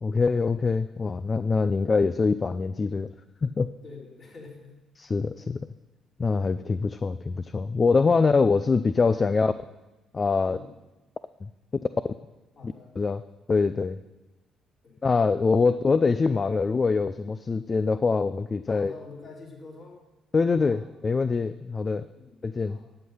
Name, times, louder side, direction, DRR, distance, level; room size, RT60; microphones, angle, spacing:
voice 1, 0.0-3.1 3.4-3.7 5.0-5.7 6.2-9.5 10.1-10.6 11.4-11.5 13.0-13.2 13.5-14.0 15.0-18.9 20.3-22.1 22.4-22.8, left 4 dB, 40° left, 13 dB, 0.4 m, -24 dB
voice 2, 3.8-4.8 6.2-6.4 10.4-10.7 12.6-13.0 14.8-15.0 18.7-20.0 20.6-20.8 21.7-21.8 22.1-22.4 22.7-22.8, left 4 dB, 55° left, -5 dB, 4.4 m, -47 dB
11.5 x 7.8 x 5.6 m, 1.1 s
hypercardioid pair, 50°, 0 cm